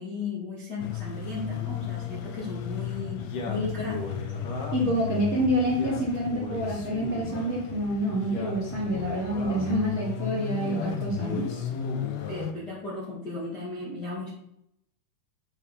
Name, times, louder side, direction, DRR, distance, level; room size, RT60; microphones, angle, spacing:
voice 1, 0.0-4.0 12.3-14.3, left 3 dB, 45° left, -7 dB, 1.3 m, -36 dB
sound 1, 0.8-12.5, left 9 dB, 80° left, 2.1 m, -35 dB
Male speech man speaking, 3.2-5.0 5.6-7.5 8.1-9.8 10.5-12.5, left 3 dB, 60° left, 1.7 m, -37 dB
voice 2, 3.5-3.9 4.7-11.5, equal, 30° right, -6 dB, 1.3 m, -27 dB
8.8 x 5.1 x 4.1 m, 0.80 s
omnidirectional pair, 4.7 m